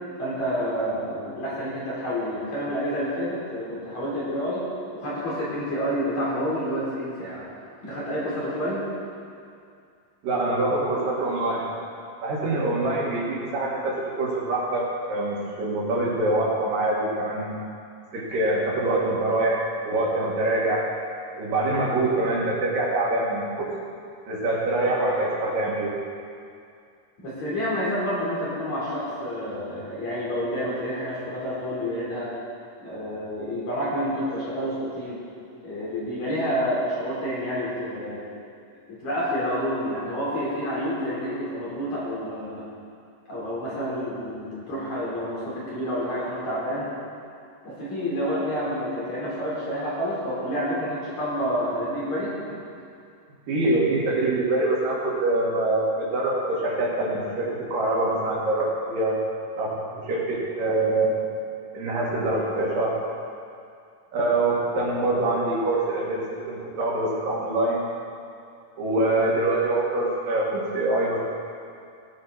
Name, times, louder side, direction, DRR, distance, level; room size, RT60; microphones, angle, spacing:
voice 1, 0.2-4.6 4.9-7.4 7.8-8.8 27.2-32.3 32.8-35.2 35.6-38.2 38.9-42.7 43.3-46.9 47.6-52.3, equal, 55° left, -8 dB, 5.2 m, -29 dB
voice 2, 10.2-11.7 12.2-17.6 18.1-20.8 21.4-23.7 24.3-25.9 53.5-59.2 59.6-61.1 61.7-62.9 64.1-66.2 66.5-67.8 68.8-71.2, right 2 dB, 80° right, -4 dB, 3.8 m, -24 dB
17.5 x 10.5 x 4.2 m, 2.4 s
omnidirectional pair, 3.8 m